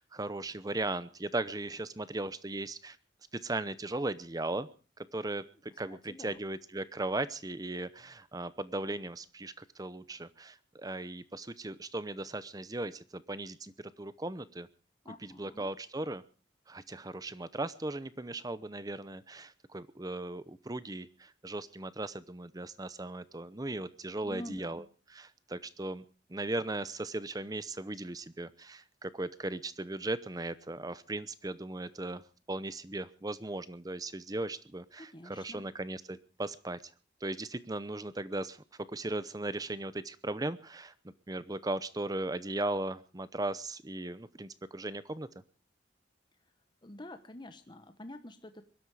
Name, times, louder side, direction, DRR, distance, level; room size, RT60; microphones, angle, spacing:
voice 1, 0.0-3.0 3.3-4.7 5.0-14.7 15.2-16.2 16.7-26.0 26.3-32.2 32.5-36.8 37.2-45.3, right 2 dB, 20° right, 16 dB, 0.7 m, -37 dB
voice 2, 5.9-6.4 15.0-15.7 24.2-24.8 35.0-35.6 46.8-48.6, left 1 dB, 25° left, 8 dB, 1.0 m, -47 dB
22.0 x 12.5 x 4.8 m, 0.36 s
head